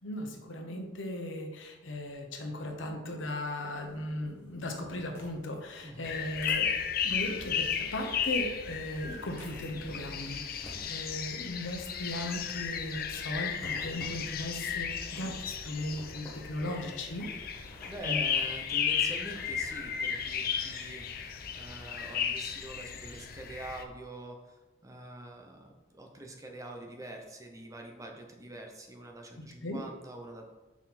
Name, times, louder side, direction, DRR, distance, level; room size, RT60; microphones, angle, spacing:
voice 1, 0.0-6.7 7.0-17.3 18.0-18.2 29.6-29.8, left 1 dB, 80° left, 3 dB, 1.0 m, -37 dB
sound 1, 3.7-20.0, equal, 10° left, 1.3 m, -54 dB
sound 2, 6.0-23.8, left 7 dB, 50° left, 0.5 m, -34 dB
voice 2, 17.9-24.6 24.8-30.4, right 1 dB, 15° right, 2 dB, 0.6 m, -45 dB
5.9 x 4.3 x 4.1 m, 1.1 s
head